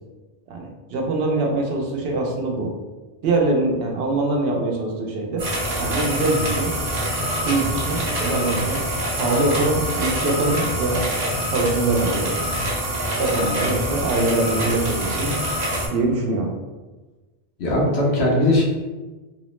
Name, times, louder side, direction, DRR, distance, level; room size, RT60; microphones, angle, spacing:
voice 1, 0.5-2.7 3.2-5.4 5.8-6.8 7.4-8.8 9.2-11.0 11.5-12.4 13.2-15.4 15.9-16.5, right 2 dB, 75° right, 0 dB, 0.8 m, -23 dB
sound 1, 5.4-15.9, equal, 45° right, 0.7 m, -25 dB
voice 2, 17.6-18.6, left 1 dB, 85° left, -3 dB, 1.0 m, -19 dB
3.0 x 2.0 x 3.0 m, 1.2 s
omnidirectional pair, 1.0 m